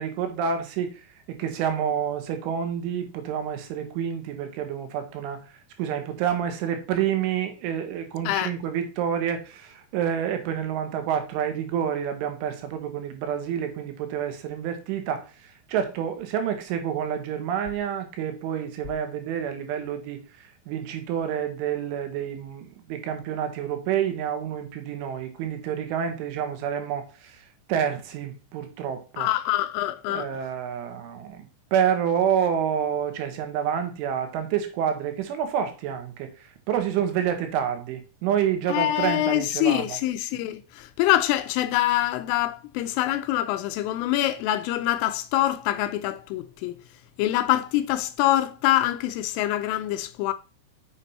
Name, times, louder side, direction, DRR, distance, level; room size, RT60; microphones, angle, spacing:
voice 1, 0.0-5.4 5.8-29.3 30.1-31.4 31.7-40.0, right 8 dB, 75° right, 3.6 m, -28 dB
voice 2, 29.2-30.3 38.7-46.8 47.2-50.3, left 14 dB, 80° left, 3.1 m, -25 dB
7.3 x 7.2 x 4.1 m
omnidirectional pair, 5.9 m